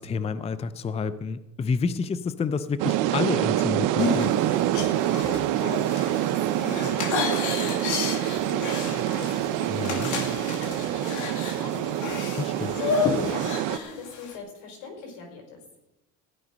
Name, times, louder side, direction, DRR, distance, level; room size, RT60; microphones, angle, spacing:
voice 1, 0.0-4.3 9.7-10.1 12.4-12.8, left 5 dB, 20° left, 13 dB, 0.5 m, -29 dB
sound 1, 2.8-13.8, right 13 dB, 70° right, 0.8 m, -26 dB
sound 2, 4.0-14.4, left 4 dB, 65° left, 2.3 m, -31 dB
voice 2, 5.0-12.3 13.0-15.6, left 4 dB, 80° left, 2 dB, 5.1 m, -42 dB
15.5 x 10.5 x 5.2 m, 0.93 s
cardioid pair, 115°, 33 cm